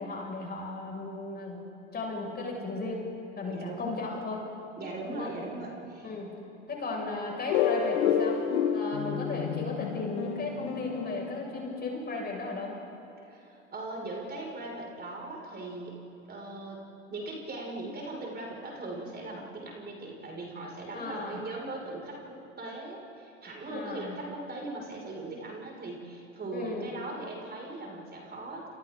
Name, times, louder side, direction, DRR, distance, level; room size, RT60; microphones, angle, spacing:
voice 1, 0.0-1.6 1.9-3.0 3.4-4.4 5.0-5.3 6.0-6.3 6.7-8.4 8.7-12.7 20.9-21.4 23.7-24.2 26.5-26.9, left 3 dB, 25° left, -1 dB, 6.1 m, -35 dB
voice 2, 3.4-4.0 4.8-6.1 13.3-16.0 16.3-16.8 17.1-28.8, right 2 dB, 30° right, -2 dB, 5.8 m, -39 dB
sound 1, 7.5-12.1, left 8 dB, 65° left, 1.8 m, -30 dB
29.0 x 29.0 x 3.9 m, 2.8 s
figure-of-eight pair, 75°, 35 cm